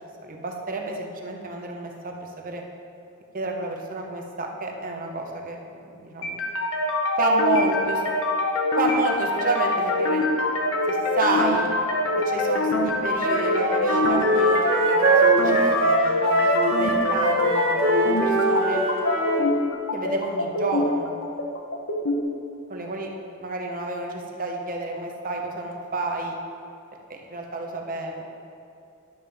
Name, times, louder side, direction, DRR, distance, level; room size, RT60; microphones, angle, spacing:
voice 1, 0.2-2.6 3.3-5.6 5.8-6.4 7.2-8.0 8.8-10.3 10.9-11.7 12.3-18.8 19.4-19.6 19.9-21.1 22.7-23.1 23.4-26.4 27.1-28.2, right 2 dB, 40° right, 1 dB, 0.9 m, -30 dB
sound 1, 6.2-22.2, left 2 dB, 65° left, 1.0 m, -25 dB
Wind instrument woodwind instrument, 13.1-19.4, right 2 dB, 65° right, 1.5 m, -22 dB
10.5 x 7.2 x 3.5 m, 2.6 s
head